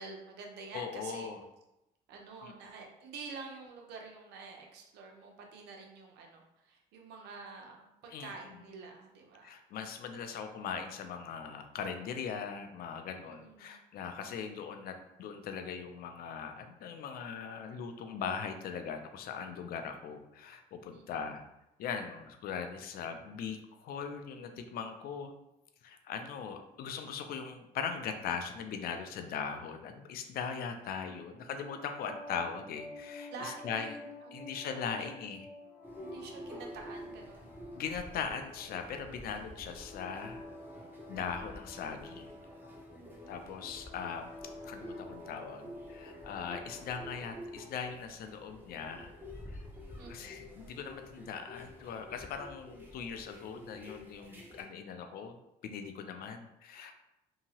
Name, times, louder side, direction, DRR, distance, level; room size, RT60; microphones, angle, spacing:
voice 1, 0.0-1.3 2.1-9.6 13.2-13.8 20.9-21.3 31.0-32.1 33.3-34.6 35.0-35.2 36.0-37.5 42.9-43.8 49.9-50.5, right 4 dB, 80° right, 1 dB, 0.7 m, -48 dB
voice 2, 0.7-1.4 2.4-2.5 8.1-8.3 9.4-21.4 21.8-25.3 25.8-33.9 34.3-35.5 37.8-40.4 41.1-42.3 43.3-44.3 44.6-49.1 49.5-49.6 50.1-55.4 55.6-56.9, left 6 dB, 60° left, 6 dB, 0.4 m, -40 dB
sound 1, 31.6-47.5, left 2 dB, 40° left, 1.0 m, -50 dB
sound 2, 35.8-54.6, equal, 10° right, 0.7 m, -49 dB
2.8 x 2.7 x 2.8 m, 0.90 s
cardioid pair, 110°, 17 cm